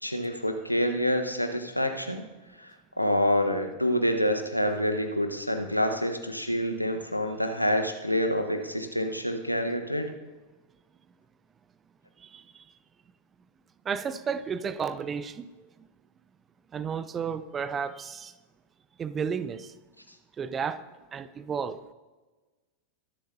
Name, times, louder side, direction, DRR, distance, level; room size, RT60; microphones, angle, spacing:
voice 1, 0.0-2.3 2.6-2.7 3.0-10.1, equal, 90° left, 1.2 m, -27 dB
voice 2, 12.2-12.6 13.8-15.7 16.7-18.3 19.0-19.7 20.4-20.8 21.1-21.9, right 6 dB, 20° right, 0.6 m, -33 dB
23.0 x 11.5 x 2.8 m
figure-of-eight pair, 90°, 0 cm